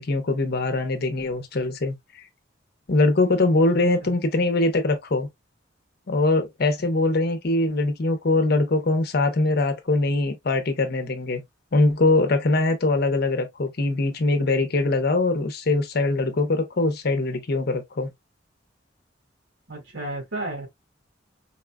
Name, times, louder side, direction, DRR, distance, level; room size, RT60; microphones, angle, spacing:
voice 1, 0.0-2.2 2.9-5.3 6.1-11.4 11.7-18.1, left 2 dB, 60° left, 0.7 m, -22 dB
voice 2, 3.4-4.1 19.7-20.7, right 2 dB, 80° right, 2.0 m, -34 dB
4.2 x 2.3 x 2.2 m
head